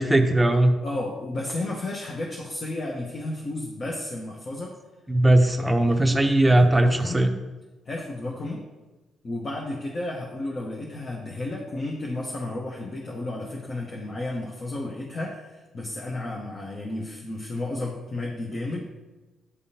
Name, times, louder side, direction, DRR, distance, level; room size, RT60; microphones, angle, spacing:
voice 1, 0.0-0.7 5.1-7.3, right 1 dB, 10° right, 4 dB, 0.7 m, -19 dB
voice 2, 0.8-4.7 5.9-6.5 6.8-7.2 7.8-8.6 9.2-19.0, left 2 dB, 40° left, -1 dB, 0.8 m, -33 dB
9.5 x 3.5 x 2.8 m, 1.2 s
cardioid pair, 90°, 0 cm